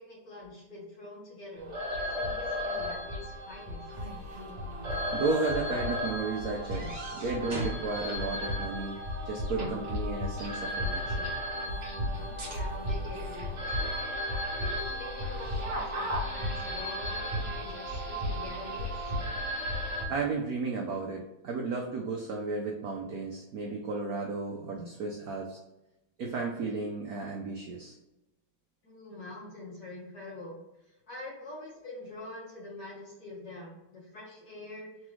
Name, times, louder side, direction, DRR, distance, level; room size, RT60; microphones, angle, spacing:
voice 1, 0.0-1.7 2.1-3.8 12.5-19.1 28.8-30.6 30.9-35.1, left 2 dB, 55° left, -5 dB, 2.1 m, -45 dB
sound 1, 1.6-20.0, left 1 dB, 40° right, 1.3 m, -34 dB
voice 2, 5.1-11.3 13.0-13.1 20.1-25.6 26.2-28.0, right 4 dB, 80° right, 0 dB, 0.8 m, -34 dB
4.0 x 3.6 x 3.1 m, 0.93 s
omnidirectional pair, 2.3 m